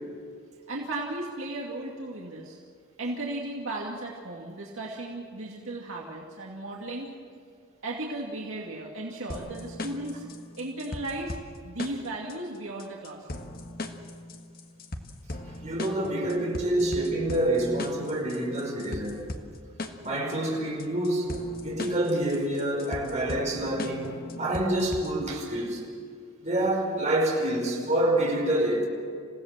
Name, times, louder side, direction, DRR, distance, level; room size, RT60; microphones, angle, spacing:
voice 1, 0.7-2.6 3.0-7.1 7.8-10.3 10.6-11.4 11.6-13.4, right 2 dB, 65° right, 2.5 m, -35 dB
sound 1, 9.3-25.3, left 1 dB, 45° left, 1.6 m, -39 dB
voice 2, 15.6-19.3 20.0-25.8 26.4-28.8, right 1 dB, 35° right, 5.5 m, -27 dB
27.5 x 17.0 x 7.6 m
head